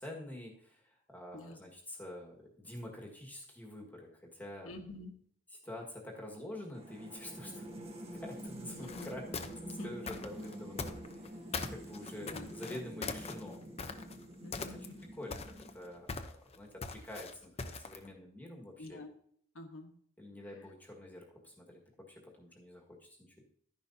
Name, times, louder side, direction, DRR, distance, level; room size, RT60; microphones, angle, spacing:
voice 1, 0.0-4.7 5.5-7.7 8.1-9.5 9.8-11.4 11.7-13.6 14.5-14.9 15.1-16.1 16.5-19.0 20.2-23.4, left 1 dB, 10° left, -1 dB, 1.7 m, -47 dB
voice 2, 4.6-5.1 8.8-9.1 9.6-9.9 12.3-12.5 14.4-15.0 18.8-19.1 19.5-19.9, left 1 dB, 75° left, 5 dB, 1.3 m, -47 dB
sound 1, 6.7-16.1, equal, 30° right, 1.5 m, -47 dB
sound 2, 8.8-11.3 11.5-14.2 14.5-15.0 15.3-18.1, left 4 dB, 30° left, 0.7 m, -41 dB
12.5 x 10.5 x 2.8 m, 0.65 s
head